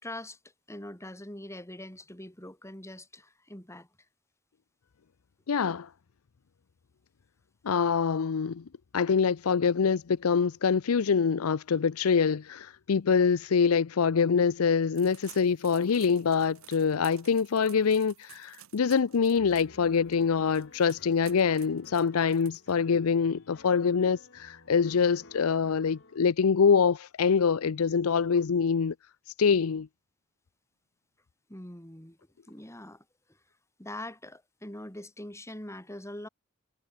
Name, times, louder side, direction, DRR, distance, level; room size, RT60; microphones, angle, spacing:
voice 1, 0.0-0.4 0.7-3.9 31.5-32.2 32.5-33.4 33.8-36.3, left 1 dB, 15° left, 5.5 m, -43 dB
voice 2, 5.5-5.9 7.6-8.6 8.9-28.9 29.4-29.9, left 6 dB, 85° left, 0.5 m, -25 dB
sound 1, 14.9-23.0, right 13 dB, 75° right, 3.1 m, -54 dB
Piano, 19.3-26.2, left 2 dB, 60° left, 3.3 m, -54 dB
head